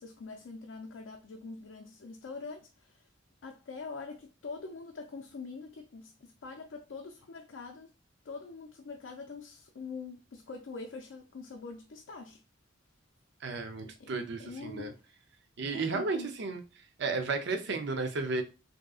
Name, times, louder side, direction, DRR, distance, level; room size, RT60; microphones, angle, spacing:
voice 1, 0.0-3.1 3.4-7.9 8.2-12.4 14.0-15.1 15.7-16.3, left 4 dB, 70° left, 0.4 m, -44 dB
voice 2, 13.4-14.9 15.6-16.6 17.0-18.4, right 3 dB, 65° right, 0.6 m, -33 dB
3.6 x 2.7 x 2.4 m
head